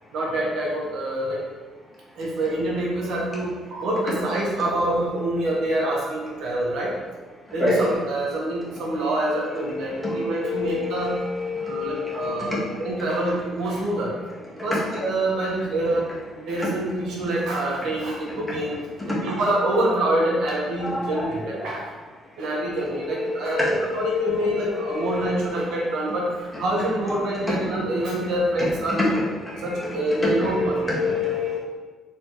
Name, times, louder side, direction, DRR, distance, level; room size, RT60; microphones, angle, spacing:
voice 1, 0.1-1.4 2.2-6.9 7.5-11.2 11.6-14.1 14.6-16.0 16.5-18.8 19.1-21.9 22.4-26.3 26.6-29.1 29.6-31.1, right 1 dB, 75° right, -3 dB, 1.0 m, -26 dB
voice 2, 9.6-12.7 16.6-16.7 20.8-21.7 22.6-25.7 28.6-28.7 29.1-31.6, left 3 dB, 15° left, -6 dB, 1.4 m, -28 dB
4.2 x 3.4 x 3.0 m, 1.4 s
cardioid pair, 95°, 0 cm